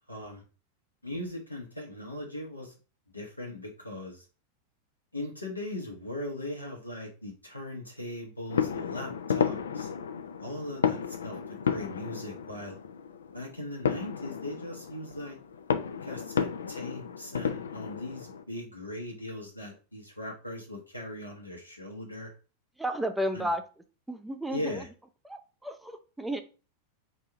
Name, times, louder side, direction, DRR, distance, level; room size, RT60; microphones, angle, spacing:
voice 1, 0.1-0.4 1.0-2.7 3.1-4.3 5.1-9.9 10.4-12.8 13.3-15.4 16.0-22.3 23.3-23.5 24.5-24.9, left 1 dB, 85° left, 0 dB, 1.0 m, -39 dB
sound 1, 8.5-18.4, left 7 dB, 65° left, 0.4 m, -33 dB
voice 2, 22.8-23.6 24.1-24.8 25.2-26.4, equal, 5° right, 7 dB, 0.6 m, -32 dB
4.1 x 2.7 x 4.6 m, 0.35 s
figure-of-eight pair, 90°, 0 cm